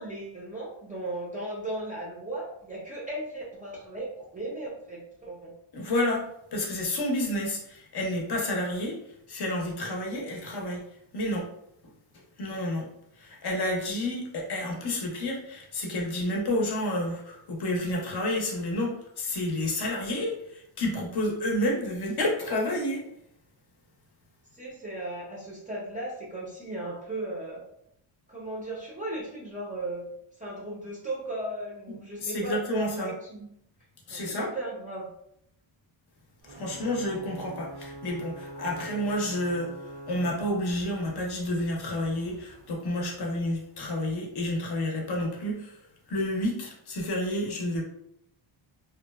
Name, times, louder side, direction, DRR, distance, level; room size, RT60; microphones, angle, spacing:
voice 1, 0.0-5.5 24.5-27.6 28.3-30.0 30.4-33.5 34.1-35.1, right 1 dB, 15° right, -6 dB, 0.5 m, -36 dB
voice 2, 5.7-9.0 9.3-10.8 11.1-11.5 12.1-12.9 13.2-23.0 31.9-33.1 34.1-34.5 36.4-45.8 46.1-47.8, left 1 dB, 50° left, -1 dB, 0.6 m, -30 dB
Ocean / Boat Water vehicle / Alarm, 36.4-44.0, right 1 dB, 80° right, 0.8 m, -45 dB
2.8 x 2.0 x 2.2 m, 0.74 s
wide cardioid pair, 160°, 50 cm